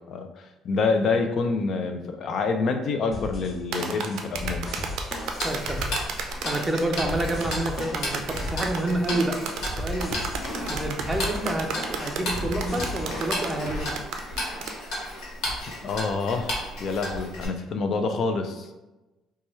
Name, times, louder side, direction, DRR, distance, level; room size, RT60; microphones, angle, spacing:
voice 1, 0.1-4.7 15.8-18.7, left 4 dB, 50° left, 7 dB, 0.4 m, -27 dB
sound 1, 3.1-13.8, left 1 dB, 30° left, 0.8 m, -36 dB
sound 2, 3.7-14.8, right 5 dB, 75° right, 0.4 m, -33 dB
Tick-tock, 5.2-17.4, left 1 dB, 80° left, 1.2 m, -34 dB
voice 2, 5.4-5.9 6.4-9.5 9.7-10.1 10.7-13.9, right 1 dB, 10° right, 2 dB, 0.5 m, -28 dB
4.2 x 2.3 x 3.1 m, 1.1 s
cardioid pair, 120°, 0 cm